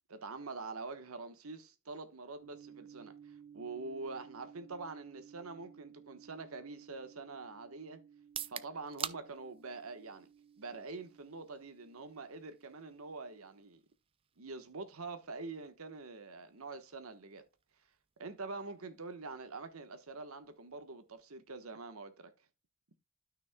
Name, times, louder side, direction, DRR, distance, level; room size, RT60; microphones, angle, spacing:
voice 1, 0.1-8.0 8.5-10.3 10.6-13.8 14.4-17.4 18.2-22.3, right 3 dB, 85° right, 1.2 m, -45 dB
sound 1, 2.4-13.7, right 7 dB, 60° right, 1.3 m, -58 dB
sound 2, 8.2-22.0, right 9 dB, 25° right, 0.4 m, -51 dB
12.5 x 6.2 x 2.2 m
head